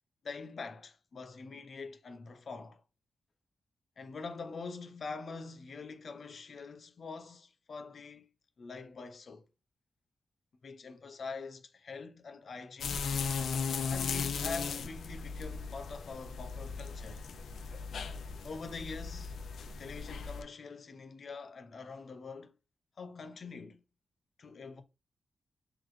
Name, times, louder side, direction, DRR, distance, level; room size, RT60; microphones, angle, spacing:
voice 1, 0.2-2.8 4.0-8.3 8.6-9.4 10.6-13.0 13.9-17.2 18.4-19.3 19.8-22.5 23.0-23.8 24.4-24.8, left 4 dB, 45° left, 0.7 m, -44 dB
sound 1, 12.8-20.4, left 5 dB, 80° left, 0.5 m, -37 dB
3.9 x 2.9 x 3.1 m
wide cardioid pair, 170°, 0 cm